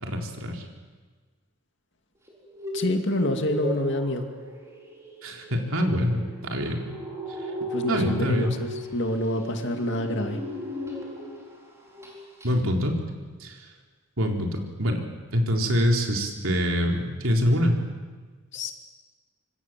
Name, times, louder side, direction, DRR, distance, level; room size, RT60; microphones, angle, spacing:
voice 1, 0.0-0.6 5.2-6.9 7.9-8.6 12.4-13.0 13.4-13.6 14.2-15.0 15.3-17.8, equal, 70° right, 2 dB, 3.9 m, -25 dB
sound 1, 2.3-11.5 11.8-12.1 12.4-12.5, equal, 15° right, 4.5 m, -36 dB
voice 2, 2.7-4.3 7.7-10.4 18.5-18.7, left 1 dB, 55° left, 5 dB, 2.4 m, -27 dB
26.0 x 24.5 x 7.6 m, 1.4 s
head